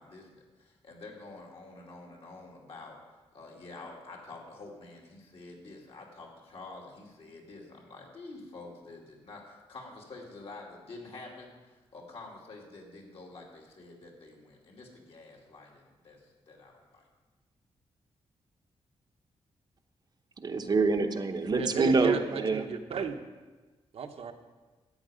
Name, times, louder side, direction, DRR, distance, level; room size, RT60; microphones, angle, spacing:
voice 1, 0.0-2.9 3.3-17.1, left 3 dB, 60° left, -2 dB, 2.7 m, -48 dB
voice 2, 20.4-22.6, right 3 dB, 40° right, 5 dB, 0.8 m, -26 dB
voice 3, 21.5-23.2 23.9-24.3, right 5 dB, 70° right, 5 dB, 1.0 m, -34 dB
13.0 x 8.8 x 5.1 m, 1.2 s
wide cardioid pair, 135°, 11 cm